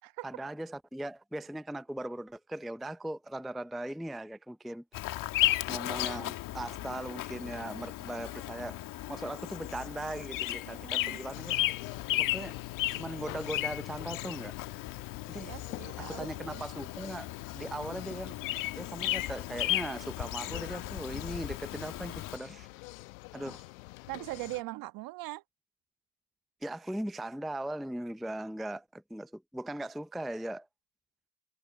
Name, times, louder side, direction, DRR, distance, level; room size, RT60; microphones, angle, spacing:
voice 1, 0.2-4.8 5.7-8.8 9.1-11.6 12.2-12.6 12.9-14.5 15.3-15.5 16.1-17.3 17.5-18.4 18.7-22.7 23.3-23.7 26.6-30.7, right 1 dB, ahead, 0.5 m, -39 dB
Bird vocalization bird call bird song, 4.9-22.4, left 15 dB, 45° left, 1.8 m, -35 dB
voice 2, 10.7-11.2 15.3-16.6 24.1-25.4, right 20 dB, 50° right, 1.3 m, -41 dB
sound 1, 11.3-24.6, left 24 dB, 65° left, 1.3 m, -46 dB
hypercardioid pair, 85°, 45 cm